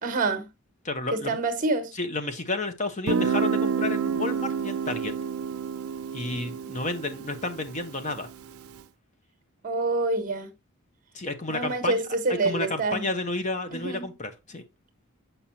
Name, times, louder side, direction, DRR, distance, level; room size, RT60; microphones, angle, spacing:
voice 1, 0.0-0.5 1.1-1.9 9.6-10.5 11.5-13.1 13.7-14.1, right 3 dB, 35° right, 1.2 m, -27 dB
voice 2, 0.8-1.4 1.9-5.1 6.1-8.3 11.1-12.0 12.4-14.6, left 3 dB, 35° left, 0.9 m, -31 dB
Guitar, 3.1-8.6, right 6 dB, 80° right, 0.5 m, -29 dB
7.2 x 5.6 x 2.7 m
head